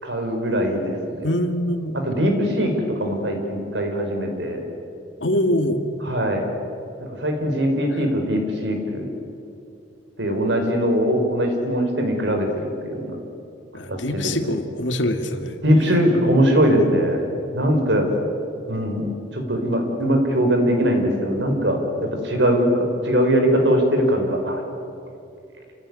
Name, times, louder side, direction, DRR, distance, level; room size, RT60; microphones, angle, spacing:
voice 1, 0.0-1.3 1.9-4.6 6.0-6.5 7.0-9.1 10.2-13.1 13.9-14.6 15.6-17.3 17.5-18.1 18.7-19.1 19.3-21.8 22.2-24.6, equal, 75° right, 3 dB, 4.8 m, -21 dB
voice 2, 1.2-2.0 5.2-5.9 13.7-15.6, left 1 dB, 90° left, 7 dB, 1.9 m, -24 dB
28.0 x 16.0 x 9.7 m, 2.6 s
head